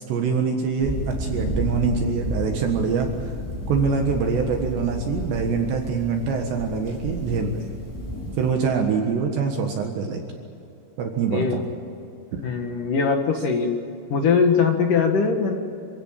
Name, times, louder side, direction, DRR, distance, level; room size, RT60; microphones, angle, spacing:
voice 1, 0.1-3.3 3.7-7.7 8.4-10.2 11.0-11.6 12.3-12.4, right 5 dB, 65° right, 3 dB, 3.5 m, -24 dB
sound 1, 0.8-8.5, left 1 dB, 5° left, 3.5 m, -31 dB
voice 2, 11.3-11.6 12.4-13.7 14.1-15.6, left 5 dB, 60° left, 4 dB, 2.4 m, -21 dB
27.0 x 16.5 x 8.9 m, 2.7 s
omnidirectional pair, 5.7 m